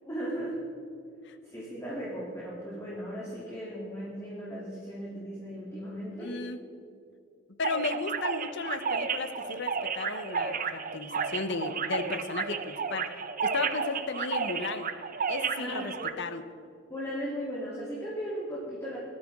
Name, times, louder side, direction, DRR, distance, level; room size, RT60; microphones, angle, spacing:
voice 1, 0.0-0.6 1.4-6.4 15.6-16.1 16.9-19.0, equal, 15° left, -7 dB, 3.0 m, -37 dB
voice 2, 1.2-1.7 6.2-6.6 7.6-13.1 13.4-14.9 15.3-16.4, left 3 dB, 60° left, 10 dB, 0.9 m, -35 dB
sound 1, 7.6-16.1, right 5 dB, 45° right, 0.8 m, -32 dB
19.5 x 13.0 x 3.7 m, 2.5 s
head